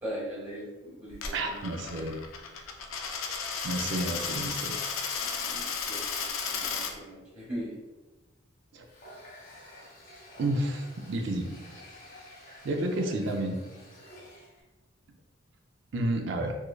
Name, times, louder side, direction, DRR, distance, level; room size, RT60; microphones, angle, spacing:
voice 1, 0.0-2.1 5.2-7.8 13.0-13.2, equal, 20° right, -8 dB, 1.1 m, -40 dB
Coin (dropping), 1.1-6.9, left 6 dB, 80° left, 0.4 m, -34 dB
voice 2, 1.3-2.1 3.6-4.8 8.7-8.8 10.4-11.5 12.6-13.6 15.9-16.6, right 1 dB, 60° right, 4 dB, 0.4 m, -30 dB
Water tap faucet, 8.8-14.6, left 1 dB, 45° left, 0.8 m, -50 dB
3.6 x 3.1 x 2.3 m, 1.2 s
head